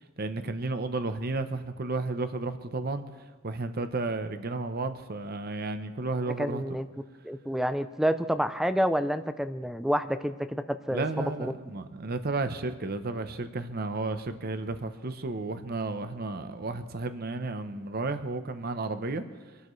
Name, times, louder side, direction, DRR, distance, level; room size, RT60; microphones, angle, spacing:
voice 1, 0.2-3.0 3.4-6.6 10.9-19.2, right 3 dB, 45° right, 10 dB, 0.7 m, -32 dB
voice 2, 6.4-6.9 7.2-11.5, equal, ahead, 11 dB, 0.4 m, -28 dB
25.5 x 13.0 x 3.2 m, 1.3 s
head